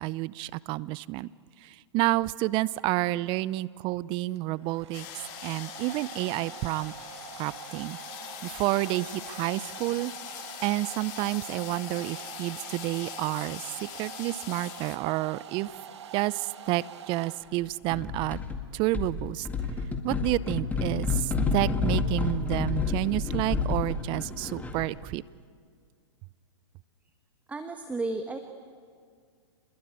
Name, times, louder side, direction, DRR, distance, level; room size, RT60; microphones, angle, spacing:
voice 1, 0.0-1.3 1.6-5.1 5.4-6.9 7.4-8.0 8.4-15.7 16.1-18.4 18.7-19.5 20.0-25.2, right 18 dB, 35° right, 20 dB, 0.6 m, -30 dB
Domestic sounds home sounds, 4.1-17.8, right 8 dB, 70° right, 2.0 m, -45 dB
sound 1, 4.9-15.0, left 12 dB, 45° left, 2.1 m, -43 dB
sound 2, 17.9-18.6 18.9-25.0, left 4 dB, 10° left, 2.2 m, -29 dB
voice 2, 27.5-28.4, right 2 dB, 10° right, 6 dB, 1.4 m, -33 dB
29.0 x 21.0 x 9.1 m, 2.1 s
hypercardioid pair, 120°, 15 cm